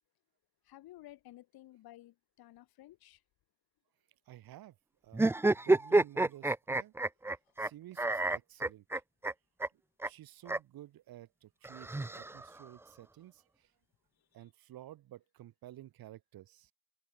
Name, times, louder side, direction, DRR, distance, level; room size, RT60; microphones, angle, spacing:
voice 1, 0.6-3.2 7.5-7.6 14.2-14.3, left 15 dB, 80° left, 3.9 m, -54 dB
voice 2, 4.3-4.8 5.0-6.9 7.6-8.9 9.7-13.7 14.3-16.7, right 14 dB, 75° right, 7.5 m, -52 dB
sound 1, 5.1-7.7 8.0-9.3 9.6-9.7 10.0-10.1 10.5-10.6 11.6-12.6, right 2 dB, 5° right, 0.5 m, -29 dB
cardioid pair, 135°, 36 cm